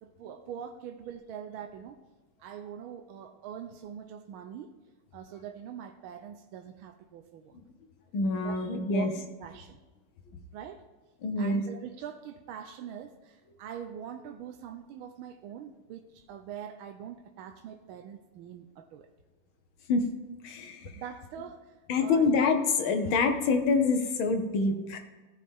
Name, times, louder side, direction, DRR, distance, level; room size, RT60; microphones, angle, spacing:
voice 1, 0.0-2.0 2.4-4.7 5.1-7.6 8.4-8.6 8.9-9.8 10.5-10.8 11.4-19.1 20.9-22.3, right 9 dB, 75° right, 6 dB, 1.4 m, -43 dB
voice 2, 8.1-9.1 11.2-11.6 19.9-20.1 20.4-20.9 21.9-25.0, left 4 dB, 70° left, 6 dB, 1.7 m, -26 dB
14.5 x 5.1 x 3.6 m, 1.2 s
omnidirectional pair, 2.4 m